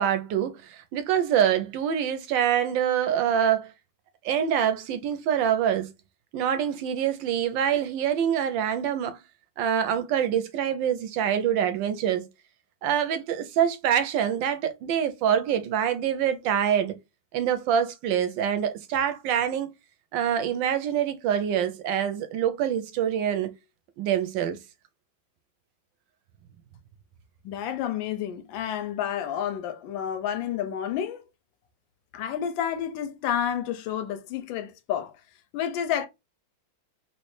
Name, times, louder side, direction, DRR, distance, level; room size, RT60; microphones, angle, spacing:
voice 1, 0.0-3.7 4.2-5.9 6.3-9.2 9.6-12.3 12.8-17.0 17.3-19.7 20.1-23.5 24.0-24.6, right 9 dB, 75° right, 1.2 m, -25 dB
voice 2, 27.4-31.2 32.1-35.1 35.5-36.1, left 9 dB, 75° left, 1.3 m, -30 dB
3.1 x 3.0 x 3.1 m
omnidirectional pair, 2.2 m